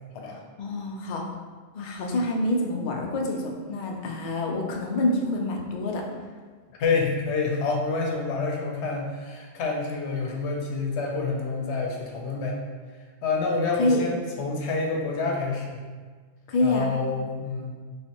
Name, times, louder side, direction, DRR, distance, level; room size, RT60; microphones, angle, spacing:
voice 1, 0.3-1.3 1.7-6.1 13.8-14.0 16.5-16.9, left 2 dB, 55° left, 0 dB, 0.6 m, -27 dB
voice 2, 6.8-12.6 13.2-15.8 16.6-17.7, left 4 dB, 90° left, 0 dB, 0.9 m, -28 dB
3.1 x 3.1 x 2.9 m, 1.5 s
omnidirectional pair, 1.1 m